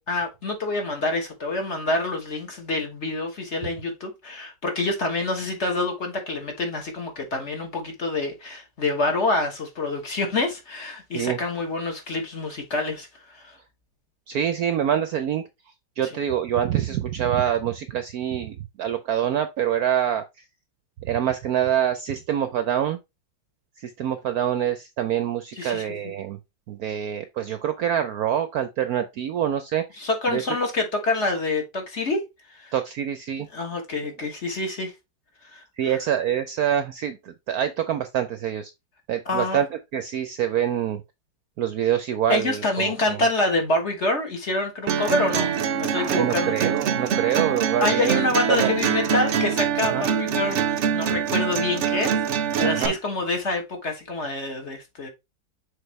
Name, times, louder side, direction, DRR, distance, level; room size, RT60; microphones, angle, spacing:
voice 1, 0.1-13.6 25.6-25.8 30.0-32.2 32.5-32.7 33.5-34.9 35.4-35.9 39.2-39.6 42.3-46.5 47.8-55.1, left 2 dB, 40° left, 1.5 m, -27 dB
voice 2, 14.3-15.4 16.0-20.2 21.0-23.0 23.8-26.4 26.7-29.8 30.3-30.4 32.7-33.5 35.8-38.7 39.1-41.0 41.6-43.2 46.0-48.2 48.5-48.7 49.9-50.1 52.7-52.9, right 10 dB, 70° right, 0.9 m, -25 dB
sound 1, 44.9-52.9, right 7 dB, 90° right, 0.6 m, -24 dB
6.7 x 4.6 x 3.2 m
omnidirectional pair, 2.1 m